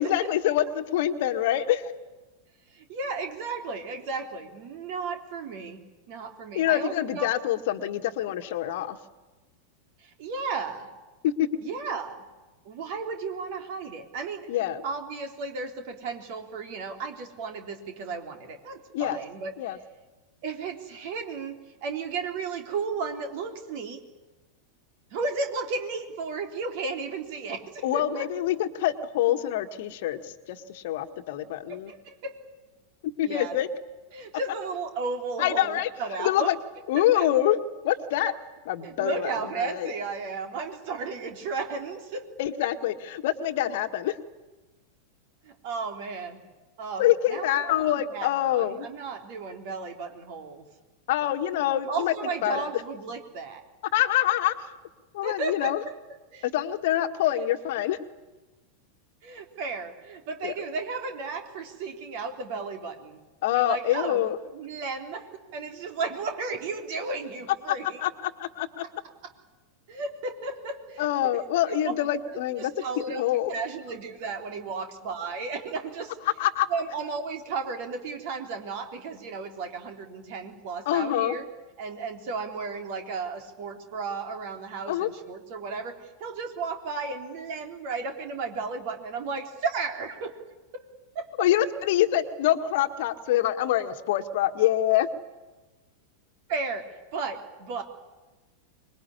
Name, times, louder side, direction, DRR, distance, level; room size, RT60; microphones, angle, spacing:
voice 1, 0.0-1.9 6.5-9.0 11.2-11.5 14.5-14.8 18.9-19.2 19.6-19.8 27.8-31.9 33.2-33.7 35.4-35.9 36.2-36.5 36.9-37.6 37.8-38.3 38.6-39.9 42.4-44.2 47.0-48.9 51.1-52.1 52.4-52.7 53.9-54.7 55.1-55.8 56.4-58.0 60.4-60.5 63.4-64.4 67.7-67.8 68.0-68.8 71.0-72.7 73.0-73.5 76.4-76.7 80.8-81.3 84.9-85.1 91.4-95.1, left 12 dB, 50° left, 8 dB, 1.7 m, -25 dB
voice 2, 2.7-7.3 10.0-10.9 11.6-12.2 12.6-19.5 20.4-24.0 25.1-28.2 31.7-32.3 33.2-33.5 34.1-36.5 37.0-37.3 38.8-42.2 45.4-46.4 46.8-47.0 47.3-50.6 51.9-53.6 55.2-55.9 56.3-56.4 59.2-63.2 63.5-64.2 64.5-68.0 69.9-71.1 71.8-71.9 72.3-73.2 73.5-76.1 76.7-81.4 81.8-90.3 90.7-90.8 91.1-91.5 96.5-97.8, right 4 dB, 50° right, 5 dB, 3.5 m, -34 dB
25.5 x 21.5 x 9.8 m, 1.2 s
figure-of-eight pair, 90°, 0 cm